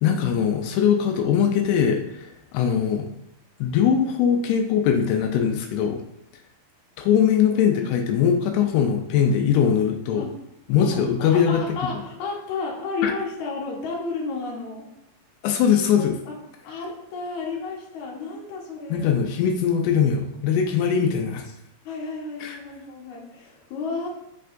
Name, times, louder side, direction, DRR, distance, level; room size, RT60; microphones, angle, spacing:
voice 1, 0.0-3.0 3.6-6.0 7.0-10.2 10.7-11.8 13.0-13.1 15.4-16.2 18.9-21.5 22.4-22.6, left 8 dB, 85° left, 3 dB, 2.6 m, -21 dB
voice 2, 10.8-14.9 16.0-16.4 16.6-19.1 21.8-24.1, left 4 dB, 60° left, -3 dB, 2.1 m, -32 dB
6.5 x 6.5 x 2.6 m, 0.80 s
omnidirectional pair, 4.7 m